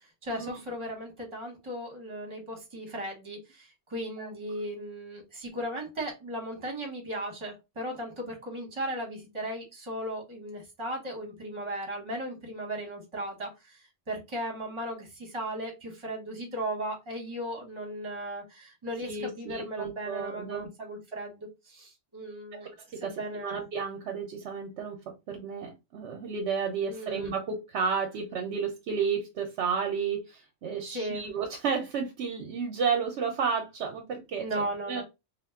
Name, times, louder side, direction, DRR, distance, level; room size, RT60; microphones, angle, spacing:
voice 1, 0.2-13.8 14.1-22.7 23.0-23.6 26.9-27.3 30.9-31.3 34.4-35.0, right 1 dB, 25° right, 0.9 m, -36 dB
voice 2, 19.0-20.7 22.5-25.0 25.3-35.0, right 6 dB, 70° right, 0.8 m, -32 dB
2.4 x 2.1 x 3.4 m
omnidirectional pair, 1.3 m